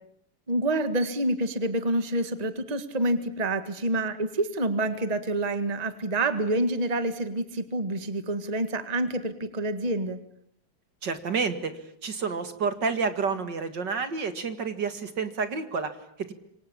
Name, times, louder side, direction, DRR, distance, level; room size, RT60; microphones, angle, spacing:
voice 1, 0.5-10.2, right 1 dB, 20° right, 10 dB, 1.8 m, -27 dB
voice 2, 11.0-16.3, right 5 dB, 55° right, 10 dB, 2.6 m, -30 dB
27.5 x 24.5 x 8.7 m, 0.67 s
omnidirectional pair, 2.4 m